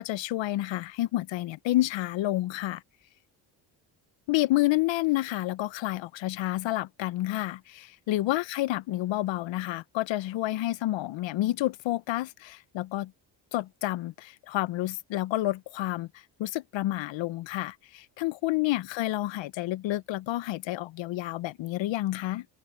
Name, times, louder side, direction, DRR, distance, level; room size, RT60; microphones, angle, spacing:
voice 1, 0.0-2.8 4.3-13.1 13.5-22.5, left 16 dB, 70° left, 0.8 m, -29 dB
cardioid pair, 80°, 46 cm